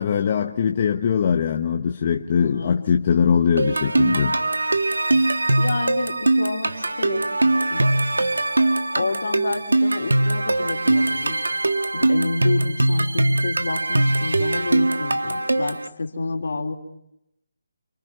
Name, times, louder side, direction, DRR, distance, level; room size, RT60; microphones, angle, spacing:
voice 1, 0.0-4.4, left 7 dB, 40° left, 1.3 m, -21 dB
voice 2, 2.4-2.8 5.6-7.3 7.7-7.8 9.0-11.4 11.9-16.7, left 3 dB, 65° left, 3.8 m, -29 dB
sound 1, 3.6-15.9, right 2 dB, 85° right, 1.4 m, -21 dB
29.0 x 24.5 x 6.0 m
figure-of-eight pair, 155°, 0 cm